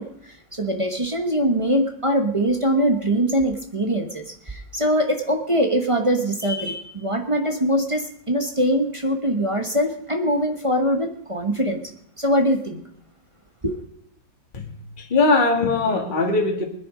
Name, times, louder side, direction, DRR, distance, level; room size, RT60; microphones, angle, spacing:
voice 1, 0.0-11.8 12.2-12.8 13.6-13.8, equal, 20° right, 4 dB, 1.1 m, -22 dB
voice 2, 14.5-16.6, left 3 dB, 25° left, 2 dB, 2.0 m, -21 dB
20.5 x 10.0 x 5.1 m, 0.70 s
omnidirectional pair, 2.1 m